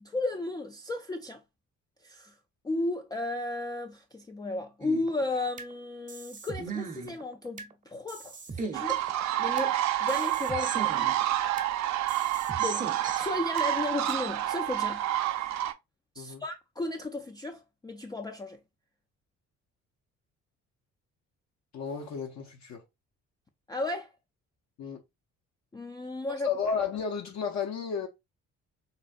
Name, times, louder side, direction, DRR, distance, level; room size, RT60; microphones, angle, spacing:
voice 1, 0.0-1.4 2.0-2.4 2.6-9.0 9.4-11.0 12.6-15.0 16.2-18.6 23.7-24.1 25.7-26.5, left 2 dB, 15° left, 0.3 m, -34 dB
sound 1, 4.8-5.7 6.1-7.7 8.1-9.7 10.1-11.7 12.1-13.7 14.1-14.2, right 5 dB, 25° right, 0.7 m, -39 dB
sound 2, 8.7-15.7, right 13 dB, 65° right, 0.5 m, -29 dB
voice 2, 21.7-22.8 24.8-25.0 26.4-28.1, left 6 dB, 65° left, 0.7 m, -32 dB
4.1 x 2.1 x 2.4 m
cardioid pair, 90°, 30 cm